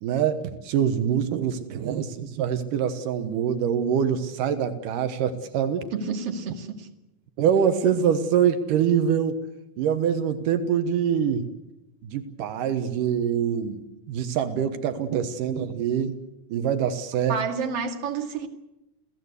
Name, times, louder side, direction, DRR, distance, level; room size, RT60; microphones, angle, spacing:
voice 1, 0.0-5.9 7.4-9.4 9.8-11.5 12.0-16.2 16.5-17.4, right 8 dB, 85° right, 2.9 m, -24 dB
voice 2, 5.9-6.9 17.3-18.5, right 5 dB, 50° right, 3.1 m, -29 dB
29.0 x 17.0 x 8.3 m
omnidirectional pair, 3.7 m